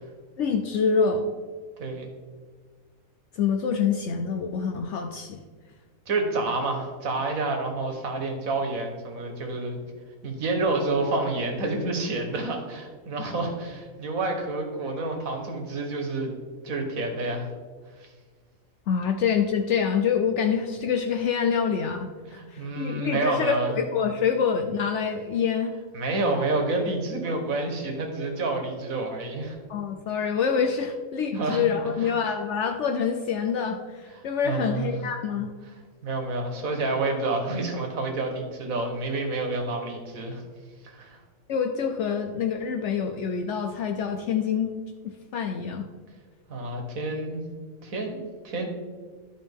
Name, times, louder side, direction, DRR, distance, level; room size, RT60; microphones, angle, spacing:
voice 1, 0.4-1.3 3.3-5.4 18.9-25.7 27.3-27.4 29.7-35.5 41.5-44.7 45.0-45.9, left 6 dB, 65° left, 5 dB, 0.8 m, -26 dB
voice 2, 6.1-9.8 10.2-16.3 16.6-17.5 18.0-18.1 22.3-23.8 25.9-29.6 31.3-31.6 32.0-32.3 34.4-35.0 36.0-40.4 40.8-41.2 46.5-47.4 47.8-48.7, right 2 dB, 90° right, 3 dB, 1.7 m, -29 dB
12.0 x 5.0 x 3.6 m, 1.5 s
omnidirectional pair, 1.4 m